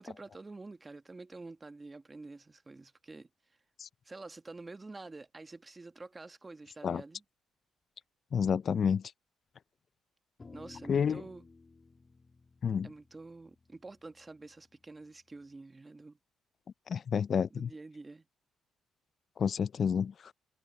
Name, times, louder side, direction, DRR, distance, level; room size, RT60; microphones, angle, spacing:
voice 1, 0.0-3.3 4.0-7.2 10.5-11.5 12.8-16.2 17.5-18.2, right 3 dB, 20° right, 1.3 m, -48 dB
voice 2, 8.3-9.1 10.9-11.2 12.6-12.9 16.9-17.7 19.4-20.3, left 7 dB, 50° left, 0.3 m, -30 dB
sound 1, 10.4-14.9, left 3 dB, 30° left, 2.2 m, -56 dB
cardioid pair, 90°, 0 cm